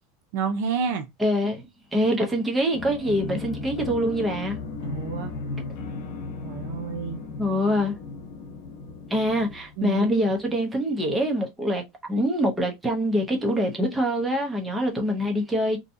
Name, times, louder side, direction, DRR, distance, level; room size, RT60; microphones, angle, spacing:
voice 1, 0.3-1.1 4.8-5.3 6.4-7.2 9.8-10.1, right 6 dB, 60° right, 0.5 m, -29 dB
voice 2, 1.2-1.6 1.9-4.6 7.4-7.9 9.1-11.8 12.1-15.8, equal, 10° right, 0.6 m, -24 dB
sound 1, 2.7-10.3, left 3 dB, 65° left, 1.0 m, -36 dB
2.6 x 2.2 x 2.5 m
supercardioid pair, 160°, 0 cm